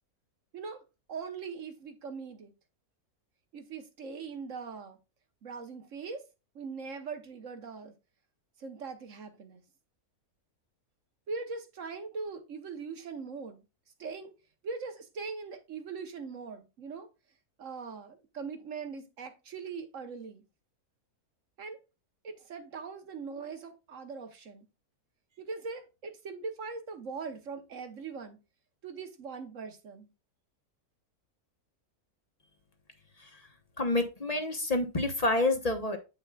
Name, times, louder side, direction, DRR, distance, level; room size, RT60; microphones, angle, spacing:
voice 1, 1.1-2.5 3.5-5.0 5.4-6.2 6.5-7.9 8.6-9.6 11.3-13.6 14.0-14.3 14.6-17.1 17.6-20.4 21.6-21.8 22.2-24.6 25.4-28.4 28.8-30.1, right 5 dB, 60° right, 1.3 m, -41 dB
voice 2, 33.8-36.0, left 2 dB, 30° left, 0.9 m, -28 dB
8.6 x 5.7 x 2.3 m
omnidirectional pair, 1.6 m